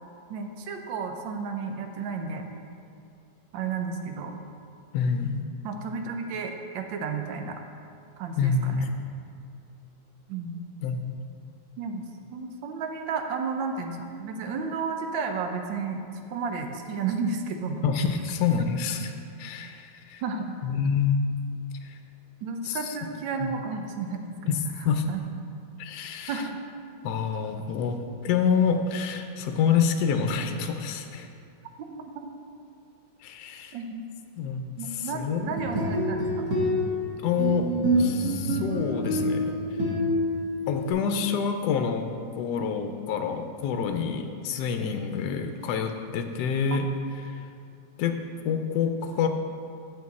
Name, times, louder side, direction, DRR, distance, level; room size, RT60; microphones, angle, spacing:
voice 1, 0.3-2.4 3.5-4.3 5.6-7.6 8.2-8.8 10.3-10.6 11.8-12.0 12.3-16.0 16.3-17.8 20.2-20.5 22.4-24.5 25.1-25.2 26.3-26.6 32.1-32.3 33.7-34.0 34.8-36.5 46.7-46.8, right 5 dB, 80° right, 4 dB, 1.4 m, -32 dB
voice 2, 4.9-5.4 8.4-8.9 10.8-11.1 17.8-19.1 19.4-20.2 20.6-21.3 21.8-22.0 22.6-22.9 23.4-23.5 24.5-24.6 24.8-25.0 25.8-26.4 27.0-31.3 33.2-33.8 34.4-35.6 37.2-37.7 38.0-39.5 40.7-42.1 42.3-46.9 47.3-47.5 48.0-49.3, left 6 dB, 70° left, 6 dB, 1.0 m, -27 dB
sound 1, 35.4-40.9, equal, 55° right, 1.7 m, -27 dB
8.5 x 6.2 x 4.1 m, 2.4 s
omnidirectional pair, 2.1 m